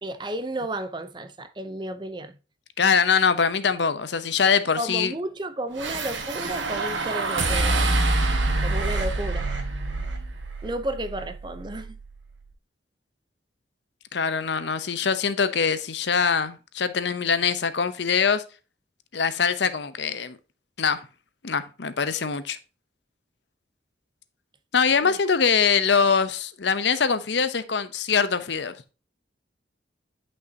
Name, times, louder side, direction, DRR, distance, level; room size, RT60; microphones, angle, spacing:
voice 1, 0.0-2.4 4.8-7.9 8.6-9.5 10.6-12.0 25.0-25.2, right 1 dB, 25° right, 0.6 m, -32 dB
voice 2, 2.8-5.1 14.1-18.4 19.1-20.4 20.8-21.1 21.4-22.6 24.7-28.8, left 6 dB, 70° left, 0.7 m, -23 dB
sound 1, 5.8-12.1, right 2 dB, 90° right, 1.5 m, -26 dB
9.4 x 5.5 x 2.8 m
head